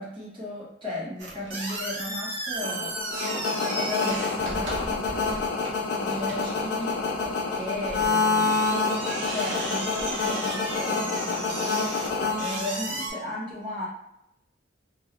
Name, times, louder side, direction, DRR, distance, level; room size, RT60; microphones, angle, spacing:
voice 1, 0.0-3.0 3.6-5.0 5.9-7.0 7.5-8.6 9.3-11.8 12.3-13.9, left 1 dB, 25° right, -7 dB, 0.9 m, -35 dB
sound 1, 1.2-13.1, right 2 dB, 75° right, 0.7 m, -35 dB
sound 2, 2.6-13.1, left 4 dB, 55° left, 0.3 m, -27 dB
2.3 x 2.1 x 2.9 m, 0.85 s
head